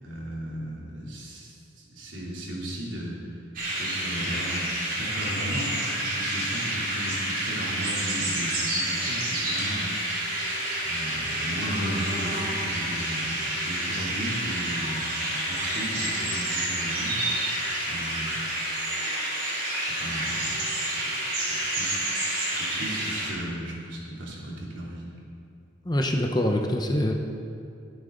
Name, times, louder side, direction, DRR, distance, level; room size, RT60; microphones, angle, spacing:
voice 1, 0.0-3.2 3.8-15.2 15.5-17.2 17.9-18.4 19.8-20.6 20.8-22.2 22.7-25.1, equal, 75° right, -4 dB, 3.2 m, -36 dB
sound 1, 3.6-23.3, right 1 dB, 45° right, 3.6 m, -29 dB
voice 2, 25.8-27.1, left 1 dB, 20° left, 3 dB, 0.8 m, -24 dB
22.0 x 8.9 x 3.9 m, 2.6 s
head